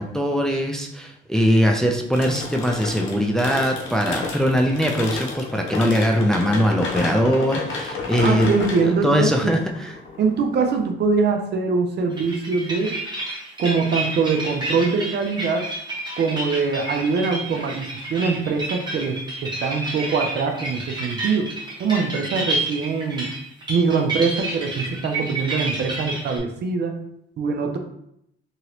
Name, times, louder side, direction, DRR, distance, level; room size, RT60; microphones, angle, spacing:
voice 1, 0.0-8.5 8.8-9.9, equal, 5° left, 2 dB, 0.4 m, -21 dB
sound 1, 2.1-10.8, left 4 dB, 75° left, 0.7 m, -32 dB
voice 2, 8.2-9.5 10.2-12.9 13.6-15.6 16.2-21.5 21.8-23.3 23.7-27.0 27.4-27.8, right 4 dB, 60° right, 4 dB, 0.6 m, -23 dB
sound 2, 12.1-26.4, right 2 dB, 20° right, 1.2 m, -30 dB
2.9 x 2.8 x 2.9 m, 0.75 s
cardioid pair, 90°, 20 cm